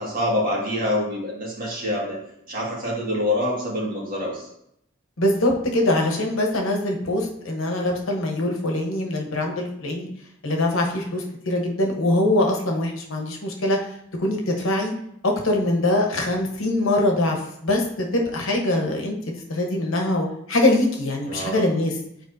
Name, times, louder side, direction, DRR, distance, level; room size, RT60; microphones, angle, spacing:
voice 1, 0.0-2.2 2.5-4.4 21.3-21.7, left 1 dB, 40° right, -4 dB, 1.9 m, -26 dB
voice 2, 5.2-10.1 10.4-13.8 14.2-14.9 15.2-19.1 19.5-21.9, left 1 dB, 80° left, 1 dB, 1.1 m, -23 dB
8.0 x 4.5 x 2.7 m, 0.74 s
head